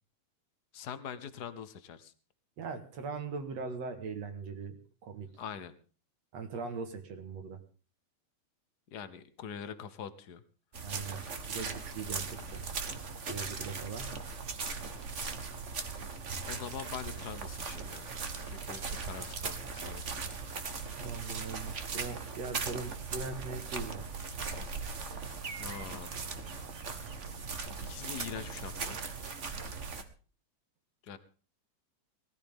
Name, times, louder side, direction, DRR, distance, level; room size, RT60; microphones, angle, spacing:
voice 1, 0.7-2.1 5.4-5.7 8.9-10.4 16.5-18.1 18.4-20.3 25.6-26.2 27.8-29.0 31.0-31.2, left 8 dB, 80° left, 12 dB, 0.9 m, -43 dB
voice 2, 2.6-5.3 6.3-7.6 10.8-11.2 11.5-12.6 13.3-14.2 21.0-24.1, right 4 dB, 65° right, 7 dB, 2.8 m, -40 dB
sound 1, 10.7-30.0, right 4 dB, 45° right, 1.0 m, -39 dB
20.0 x 14.5 x 3.6 m, 0.37 s
omnidirectional pair, 3.3 m